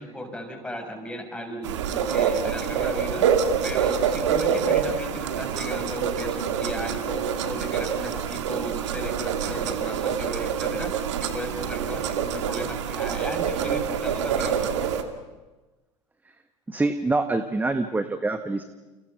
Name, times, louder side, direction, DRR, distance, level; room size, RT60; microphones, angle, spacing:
voice 1, 0.0-3.3 3.6-10.9 11.2-14.7, equal, 5° left, 3 dB, 6.6 m, -35 dB
sound 1, 1.6-15.0, right 7 dB, 65° right, 2.2 m, -26 dB
voice 2, 16.7-18.6, right 2 dB, 10° right, 10 dB, 1.4 m, -25 dB
29.5 x 29.5 x 5.9 m, 1.2 s
figure-of-eight pair, 75°, 16 cm